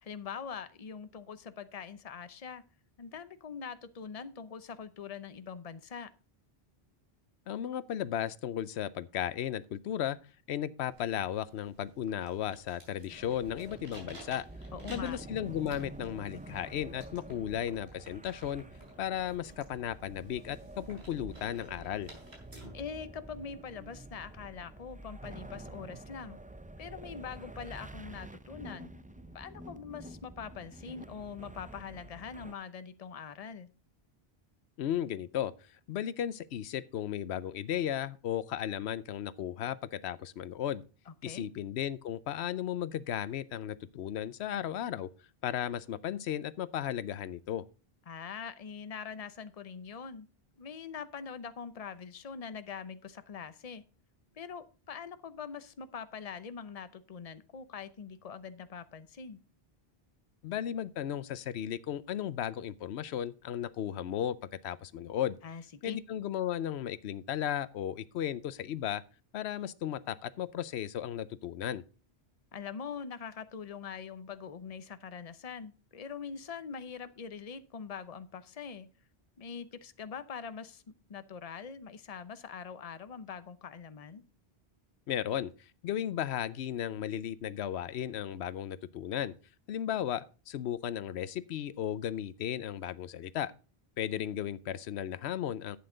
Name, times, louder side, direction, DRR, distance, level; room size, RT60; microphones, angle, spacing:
voice 1, 0.0-2.6 3.0-6.1 14.7-15.2 22.7-26.4 26.8-28.9 29.3-33.7 41.1-41.5 48.1-50.3 50.6-53.8 54.3-59.4 65.4-66.0 72.5-78.9 79.4-80.8 81.1-84.2, left 6 dB, 40° left, 0.8 m, -43 dB
voice 2, 7.5-10.2 10.5-14.5 14.9-18.6 19.0-22.1 34.8-35.5 35.9-40.8 41.2-45.1 45.4-47.6 60.4-64.4 64.6-65.4 65.8-69.0 69.3-71.8 85.1-89.3 89.7-93.5 94.0-95.8, left 10 dB, 90° left, 0.9 m, -35 dB
sound 1, 10.9-22.7, right 1 dB, 80° right, 4.5 m, -55 dB
sound 2, 13.1-32.5, right 2 dB, 15° right, 0.3 m, -48 dB
11.0 x 8.6 x 3.8 m
omnidirectional pair, 1.1 m